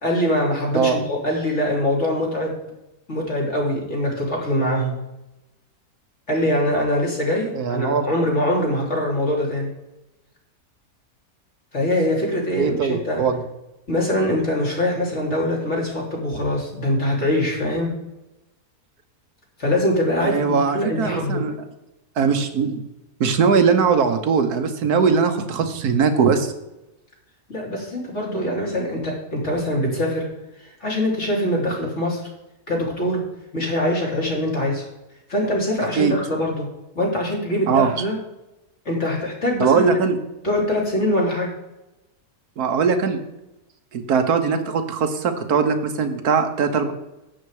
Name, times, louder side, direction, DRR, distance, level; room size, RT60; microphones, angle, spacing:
voice 1, 0.0-2.6 3.1-5.0 6.3-9.7 11.7-13.3 13.9-17.9 19.6-21.4 27.5-30.3 30.6-32.2 32.7-33.2 33.5-34.9 35.3-36.7 36.9-38.2 38.8-39.9 40.4-41.5, left 1 dB, 45° left, -2 dB, 3.3 m, -23 dB
voice 2, 7.5-8.0 12.5-13.4 20.2-21.5 22.2-22.9 23.2-26.5 35.9-36.1 37.7-37.9 39.6-40.2 42.6-43.2 43.9-46.9, right 5 dB, 75° right, 7 dB, 1.5 m, -20 dB
11.0 x 7.9 x 4.8 m, 0.94 s
omnidirectional pair, 1.7 m